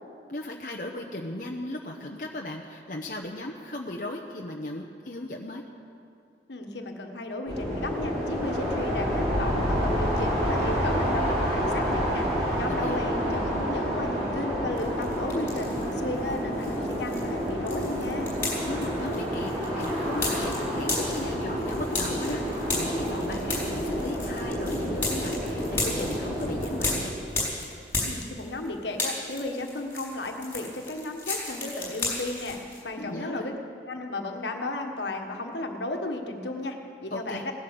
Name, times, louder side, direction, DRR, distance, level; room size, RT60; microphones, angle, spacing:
voice 1, 0.3-5.6 12.7-13.0 18.6-27.1 33.0-33.5 37.1-37.4, left 1 dB, 50° left, 0 dB, 0.9 m, -37 dB
voice 2, 6.5-12.3 12.6-18.4 28.1-33.6 33.8-37.5, left 2 dB, 80° left, 3 dB, 1.5 m, -34 dB
sound 1, 7.5-27.0, equal, 35° right, 3.5 m, -29 dB
sound 2, 14.8-15.9 16.3-28.7 28.9-32.8, left 2 dB, 15° left, 4.1 m, -34 dB
17.5 x 11.0 x 7.0 m, 2.5 s
head